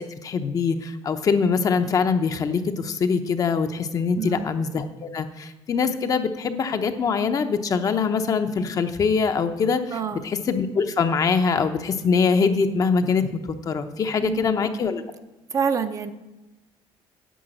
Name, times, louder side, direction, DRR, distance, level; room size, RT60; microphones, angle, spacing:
voice 1, 0.0-15.0, left 5 dB, 35° left, 8 dB, 0.8 m, -23 dB
voice 2, 4.2-4.5 9.9-10.2 14.2-14.5 15.5-16.1, right 6 dB, 30° right, 8 dB, 0.7 m, -27 dB
10.0 x 7.8 x 7.8 m, 1.0 s
cardioid pair, 155°, 10 cm